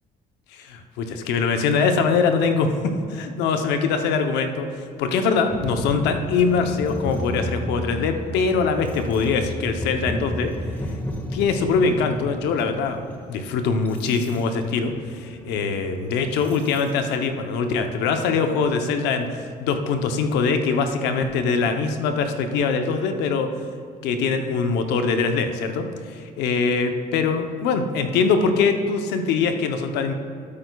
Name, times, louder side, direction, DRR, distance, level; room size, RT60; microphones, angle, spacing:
voice 1, 0.5-2.7 3.1-10.5 11.3-23.5 24.0-30.1, left 5 dB, 90° left, 6 dB, 0.7 m, -23 dB
sound 1, 5.5-17.2, left 1 dB, 10° left, 1.0 m, -33 dB
12.5 x 8.5 x 2.3 m, 2.2 s
cardioid pair, 110°, 17 cm